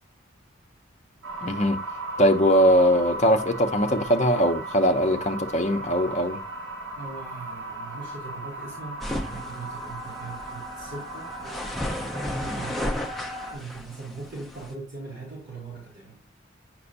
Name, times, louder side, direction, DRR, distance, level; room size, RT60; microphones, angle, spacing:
sound 1, 1.2-13.5, right 1 dB, 90° right, 3.3 m, -36 dB
voice 1, 1.4-1.8 2.2-6.4, equal, 35° left, 0.7 m, -21 dB
voice 2, 7.0-13.1 13.5-16.2, right 3 dB, 60° right, 3.9 m, -41 dB
sound 2, 9.0-14.7, left 1 dB, ahead, 0.6 m, -34 dB
8.2 x 6.0 x 2.6 m
head